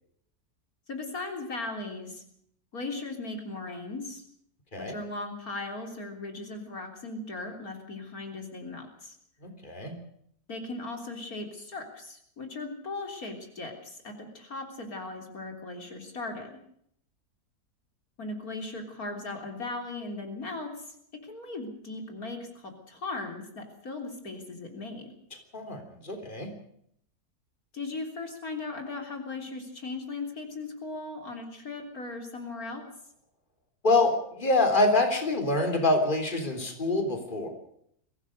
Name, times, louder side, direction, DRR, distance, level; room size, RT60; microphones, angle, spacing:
voice 1, 0.9-2.2 2.7-4.2 4.8-9.2 10.5-16.6 18.2-21.0 21.2-25.1 27.7-32.8, left 3 dB, 70° left, 4 dB, 4.0 m, -38 dB
voice 2, 9.4-9.9 25.5-26.5 33.8-37.5, left 2 dB, 30° left, 5 dB, 3.8 m, -26 dB
23.5 x 17.0 x 6.5 m, 0.69 s
omnidirectional pair, 1.6 m